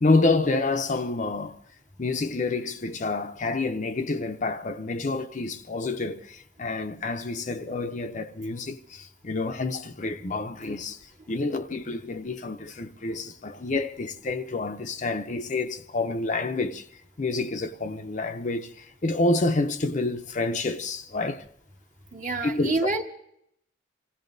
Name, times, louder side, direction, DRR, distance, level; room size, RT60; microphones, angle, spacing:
voice 1, 0.0-1.6 2.0-11.0 11.3-16.8 17.2-18.7 19.0-21.4 22.4-22.8, left 3 dB, 40° left, 0.6 m, -28 dB
voice 2, 22.1-23.0, right 3 dB, 40° right, 1.5 m, -27 dB
27.5 x 16.5 x 2.6 m
head